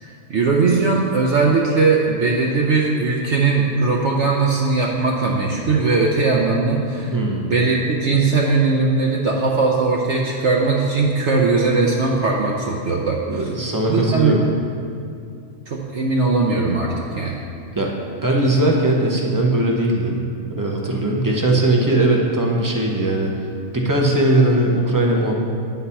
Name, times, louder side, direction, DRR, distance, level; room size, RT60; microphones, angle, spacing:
voice 1, 0.0-7.2 7.4-13.5 13.9-14.6 15.7-17.4, right 4 dB, 60° right, -2 dB, 0.9 m, -19 dB
voice 2, 7.1-7.4 13.3-14.4 17.8-17.9 18.2-20.2 20.5-23.3 23.7-25.4, right 1 dB, 25° right, -1 dB, 0.5 m, -19 dB
9.6 x 3.9 x 5.6 m, 2.4 s
omnidirectional pair, 1.5 m